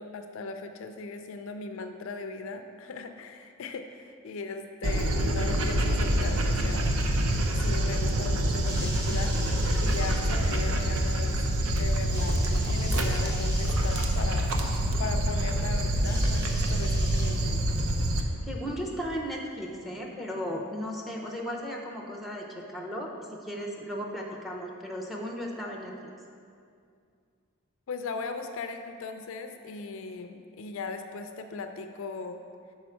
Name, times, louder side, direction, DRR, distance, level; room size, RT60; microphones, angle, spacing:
voice 1, 0.0-6.9 7.4-9.3 9.8-11.4 11.7-14.5 15.0-17.6 27.9-32.4, left 4 dB, 60° left, 7 dB, 0.4 m, -38 dB
Dog, 4.8-18.2, right 1 dB, 70° right, 0.6 m, -26 dB
sound 1, 8.5-10.2 12.1-14.1 16.0-17.7 18.7-18.8, equal, 15° right, 1.0 m, -42 dB
voice 2, 18.2-26.1, equal, ahead, -1 dB, 0.5 m, -36 dB
6.3 x 4.8 x 4.4 m, 2.3 s
head